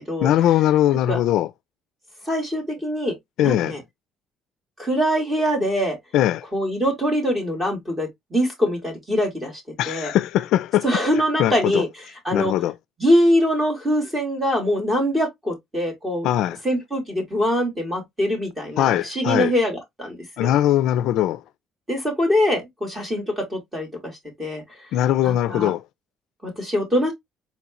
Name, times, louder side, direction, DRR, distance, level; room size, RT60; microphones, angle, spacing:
voice 1, 0.2-1.5 3.4-3.8 6.1-6.4 9.8-10.9 11.4-11.8 12.3-12.7 16.2-16.6 18.8-19.5 20.4-21.4 24.9-25.8, left 12 dB, 75° left, 0.3 m, -20 dB
voice 2, 2.3-3.1 3.4-3.8 4.8-6.0 6.5-9.5 9.9-10.1 10.8-11.9 12.2-12.5 13.0-16.3 16.6-20.5 21.9-24.1 24.4-24.6 25.2-25.7 26.4-27.1, equal, 15° right, 2.4 m, -23 dB
4.7 x 4.1 x 2.5 m
cardioid pair, 155°, 0 cm